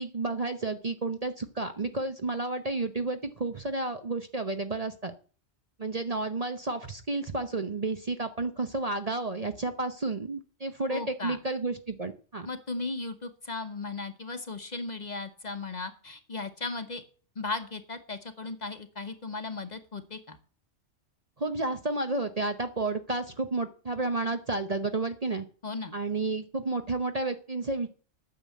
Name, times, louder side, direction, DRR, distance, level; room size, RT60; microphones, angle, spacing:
voice 1, 0.0-5.1 5.8-12.5 21.4-25.4 25.9-27.9, right 2 dB, 35° right, 7 dB, 0.8 m, -31 dB
voice 2, 10.9-11.4 12.4-17.0 17.4-20.4 25.6-25.9, left 3 dB, 35° left, 9 dB, 1.1 m, -36 dB
9.4 x 7.0 x 8.3 m, 0.40 s
omnidirectional pair, 1.3 m